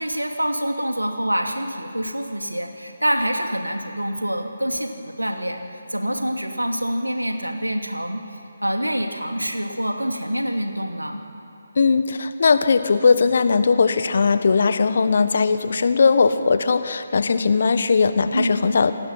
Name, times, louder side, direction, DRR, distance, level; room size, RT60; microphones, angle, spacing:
voice 1, 0.0-8.2 8.6-11.2 18.3-18.5, equal, 90° right, 4 dB, 2.7 m, -26 dB
voice 2, 11.7-18.9, left 5 dB, 50° left, 11 dB, 1.3 m, -19 dB
27.5 x 19.0 x 5.8 m, 2.9 s
figure-of-eight pair, 150°, 0 cm